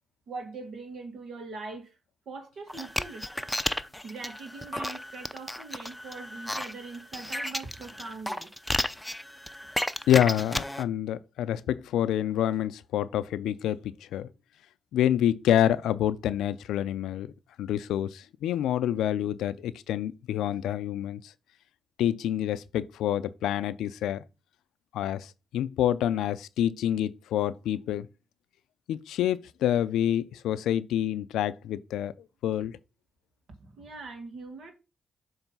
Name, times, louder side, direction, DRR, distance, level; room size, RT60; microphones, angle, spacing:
voice 1, 0.3-2.0 2.3-3.5 4.0-8.5 33.6-34.7, right 3 dB, 75° right, 1.9 m, -42 dB
sound 1, 2.7-10.8, left 1 dB, 5° left, 0.6 m, -33 dB
voice 2, 10.1-14.3 14.9-17.3 17.6-21.2 22.0-24.2 24.9-28.1 28.9-32.1 32.4-32.7, left 11 dB, 90° left, 0.4 m, -27 dB
7.2 x 3.2 x 5.3 m
cardioid pair, 65°, 0 cm